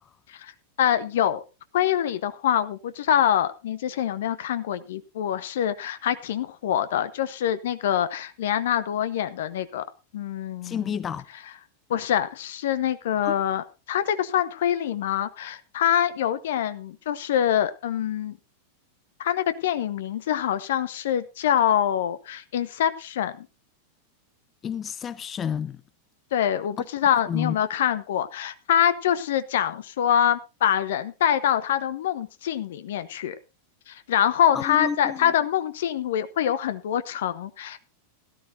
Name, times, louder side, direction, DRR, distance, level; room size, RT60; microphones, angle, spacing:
voice 1, 0.8-1.4 1.7-9.8 10.1-11.0 11.9-18.4 19.2-23.5 26.3-33.4 33.9-37.8, left 10 dB, 55° left, 0.8 m, -25 dB
voice 2, 10.6-11.2 13.2-13.4 24.6-25.8 27.3-27.6 34.5-35.3, left 7 dB, 25° left, 0.6 m, -30 dB
17.0 x 12.5 x 2.7 m
figure-of-eight pair, 90°, 0 cm